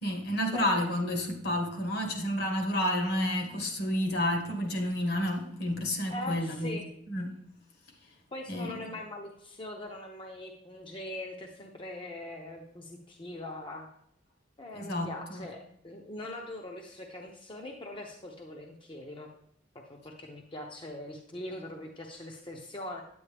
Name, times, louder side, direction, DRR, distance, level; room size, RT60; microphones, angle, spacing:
voice 1, 0.0-7.3 8.5-8.8 14.7-15.5, left 1 dB, 60° left, 1.4 m, -30 dB
voice 2, 6.1-6.9 8.3-13.9 14.6-19.3 20.0-23.0, left 1 dB, 25° left, 0.7 m, -41 dB
9.2 x 8.6 x 3.4 m
head